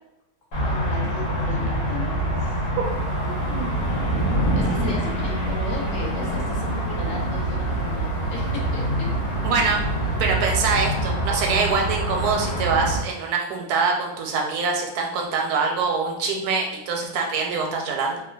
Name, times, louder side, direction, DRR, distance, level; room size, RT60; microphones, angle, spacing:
sound 1, 0.5-13.0, right 1 dB, 90° left, 1.4 m, -26 dB
voice 1, 0.6-2.7 4.3-9.1, left 3 dB, 70° left, -2 dB, 0.9 m, -36 dB
Thunder / Rain, 2.8-11.2, right 1 dB, 35° left, 0.7 m, -31 dB
voice 2, 3.2-3.8 9.4-9.9 10.2-18.2, right 4 dB, 85° right, 1 dB, 1.1 m, -24 dB
sound 2, 5.2-10.1, right 1 dB, 5° right, 0.6 m, -40 dB
3.0 x 2.1 x 2.2 m, 0.91 s
omnidirectional pair, 1.6 m